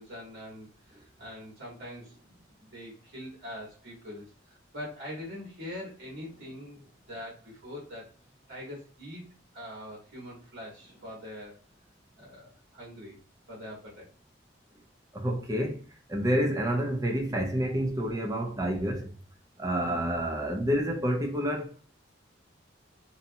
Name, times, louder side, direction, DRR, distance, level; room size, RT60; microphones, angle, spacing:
voice 1, 0.0-8.1 8.5-9.2 9.5-11.6 12.2-13.2 13.5-14.1 19.8-20.1, left 1 dB, 75° right, 1.2 m, -43 dB
voice 2, 15.1-15.8 16.1-19.1 19.6-21.7, equal, 15° right, 0.4 m, -28 dB
2.6 x 2.1 x 2.7 m
head